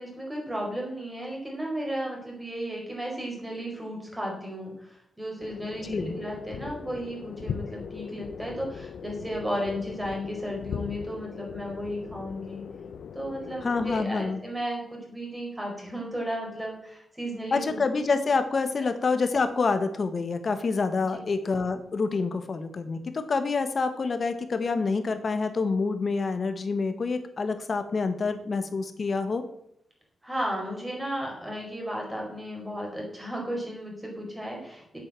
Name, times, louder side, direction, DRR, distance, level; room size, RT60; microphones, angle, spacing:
voice 1, 0.0-12.6 13.1-17.8 21.0-21.1 30.2-35.0, equal, 10° right, -1 dB, 4.7 m, -34 dB
sound 1, 5.4-14.0, left 6 dB, 80° left, 0.8 m, -39 dB
voice 2, 5.8-6.2 13.6-14.4 17.5-29.4, left 4 dB, 45° left, 8 dB, 1.4 m, -27 dB
8.4 x 8.1 x 7.5 m, 0.77 s
wide cardioid pair, 120°, 0 cm